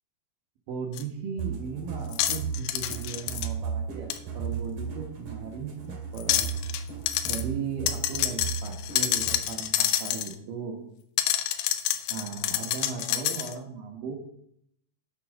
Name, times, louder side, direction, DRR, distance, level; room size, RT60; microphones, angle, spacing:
voice 1, 0.7-6.4 7.3-10.8 12.1-14.2, right 6 dB, 65° right, 2 dB, 2.6 m, -37 dB
sound 1, 1.0-1.1 2.1-3.5 4.1-4.2 6.2-6.8 7.1-7.4 7.9-10.4 11.2-13.5, left 12 dB, 90° left, 2.8 m, -28 dB
sound 2, 1.4-9.6, right 6 dB, 45° right, 2.8 m, -35 dB
8.5 x 7.5 x 6.2 m, 0.70 s
omnidirectional pair, 4.7 m